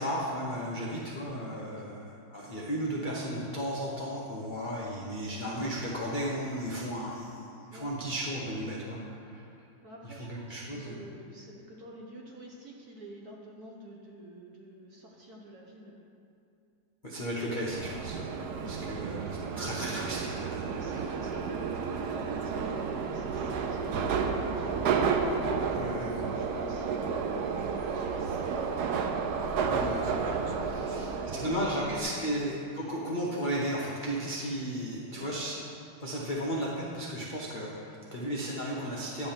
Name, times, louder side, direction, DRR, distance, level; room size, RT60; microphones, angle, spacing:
voice 1, 0.0-9.4 10.0-11.0 17.0-18.2 18.6-20.7 25.7-26.2 29.7-30.1 30.6-31.1 31.4-35.6 36.0-39.3, equal, 60° left, -5 dB, 0.5 m, -34 dB
voice 2, 9.8-16.0 18.6-19.8 20.6-25.0 26.2-29.0 30.7-32.4 35.1-35.3, equal, 55° right, -1 dB, 1.2 m, -48 dB
Subway metro underground, 17.7-32.0, right 5 dB, 80° right, 0.9 m, -31 dB
10.5 x 3.7 x 7.2 m, 2.5 s
omnidirectional pair, 2.3 m